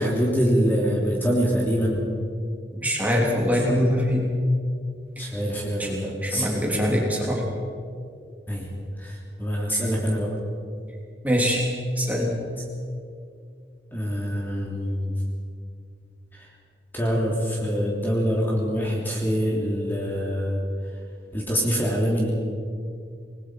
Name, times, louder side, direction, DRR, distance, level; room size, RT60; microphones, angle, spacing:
voice 1, 0.0-2.0 3.5-3.6 5.2-7.0 8.5-8.7 9.0-10.3 13.9-15.1 16.3-16.5 16.9-20.6 21.3-22.3, equal, 10° left, -4 dB, 2.9 m, -25 dB
voice 2, 2.8-4.3 5.2-5.3 5.8-5.9 6.2-7.5 9.7-9.8 11.2-11.7 12.0-12.4, equal, 10° right, -2 dB, 3.3 m, -23 dB
27.0 x 20.0 x 4.8 m, 2.3 s
head